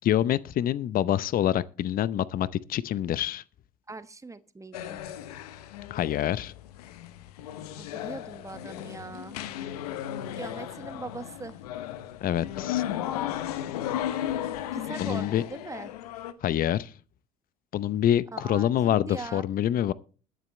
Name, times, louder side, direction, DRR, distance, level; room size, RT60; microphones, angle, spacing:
voice 1, 0.0-3.4 5.9-6.5 12.2-12.8 15.0-15.4 16.4-16.9 17.7-19.9, left 11 dB, 50° left, 0.7 m, -26 dB
voice 2, 3.9-5.0 7.8-9.4 10.4-11.6 14.7-15.9 18.3-19.4, right 3 dB, 15° right, 1.2 m, -41 dB
sound 1, 4.7-16.3, left 11 dB, 85° left, 1.0 m, -35 dB
21.5 x 7.6 x 3.2 m
hypercardioid pair, 65°, 19 cm